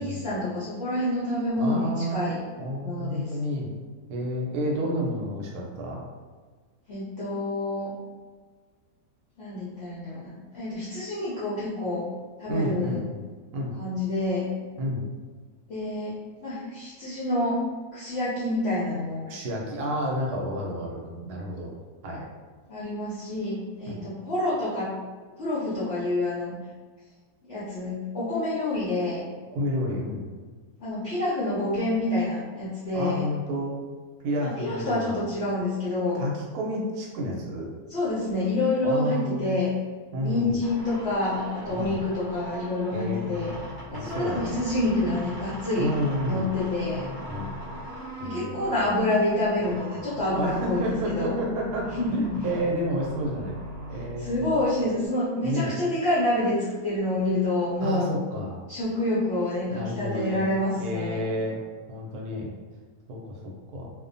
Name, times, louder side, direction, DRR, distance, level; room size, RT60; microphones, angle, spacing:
voice 1, 0.0-2.4 2.8-3.3 6.9-7.9 9.4-12.1 12.4-13.0 13.7-14.5 15.7-17.6 17.9-19.3 22.7-24.9 25.4-26.6 27.5-29.2 30.8-33.2 34.4-36.2 37.9-39.7 40.2-43.5 43.9-45.9 46.2-47.1 48.2-51.4 51.9-52.5 54.2-58.1 58.7-61.2, left 1 dB, 65° left, -10 dB, 0.6 m, -27 dB
voice 2, 1.6-2.2 2.6-3.7 4.1-6.0 12.5-13.2 13.5-13.7 14.8-15.1 19.3-21.7 22.0-22.3 23.9-24.0 29.5-30.3 32.9-33.8 34.2-35.2 36.1-37.7 38.8-39.6 40.1-40.6 41.7-42.0 42.9-43.5 43.9-44.6 45.8-46.5 47.3-47.6 48.2-48.7 50.3-51.9 52.1-53.6 53.9-54.4 55.4-55.7 57.8-58.6 59.7-60.5 60.8-61.6 61.9-62.5 63.1-63.4 63.7-63.9, equal, 75° right, -2 dB, 1.1 m, -30 dB
sound 1, 40.6-55.1, right 1 dB, 35° right, 1.0 m, -40 dB
2.6 x 2.1 x 2.5 m, 1.4 s
omnidirectional pair, 1.8 m